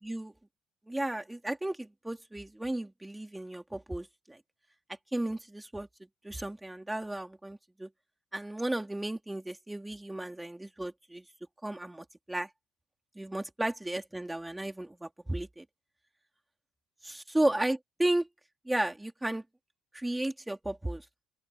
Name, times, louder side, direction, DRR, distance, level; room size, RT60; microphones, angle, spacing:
voice 1, 0.0-0.3 0.9-4.4 5.1-5.9 6.2-7.9 8.3-11.2 11.6-12.5 13.1-15.6 17.0-18.3 18.6-19.4 19.9-21.0, right 1 dB, 5° right, 3.2 m, -34 dB
open air
cardioid pair, 120°, 0 cm